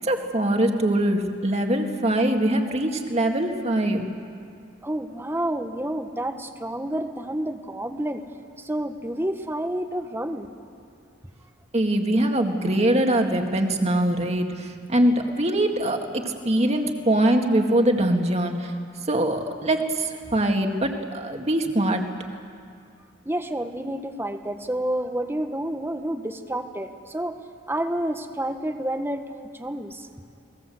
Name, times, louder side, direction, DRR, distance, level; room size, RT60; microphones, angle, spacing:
voice 1, 0.0-4.1 11.7-18.7 19.1-22.0, right 1 dB, 35° right, 4 dB, 2.1 m, -23 dB
voice 2, 4.8-8.2 8.6-10.5 23.2-27.4 27.7-29.2 29.5-30.1, right 1 dB, 10° right, 7 dB, 1.3 m, -29 dB
29.5 x 20.0 x 7.8 m, 2.3 s
head